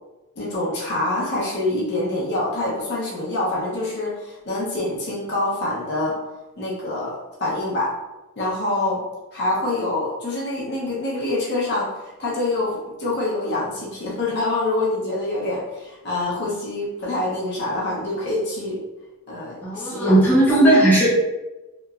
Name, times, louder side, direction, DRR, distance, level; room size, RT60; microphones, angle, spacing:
voice 1, 0.4-6.2 6.6-7.9 8.4-9.0 9.3-18.8 19.3-20.2, left 2 dB, 50° left, -6 dB, 0.6 m, -26 dB
voice 2, 19.6-21.1, right 1 dB, 10° left, -8 dB, 0.6 m, -16 dB
2.8 x 2.1 x 2.3 m, 1.1 s
head